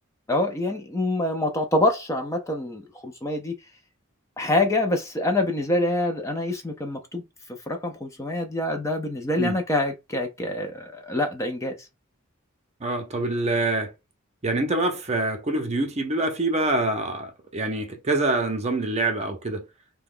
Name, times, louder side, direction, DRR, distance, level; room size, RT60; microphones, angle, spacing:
voice 1, 0.3-3.5 4.4-7.2 7.7-11.7, left 1 dB, 15° left, 0.5 m, -26 dB
voice 2, 12.8-13.9 14.4-19.7, right 2 dB, 30° right, 0.6 m, -25 dB
2.9 x 2.2 x 3.6 m
head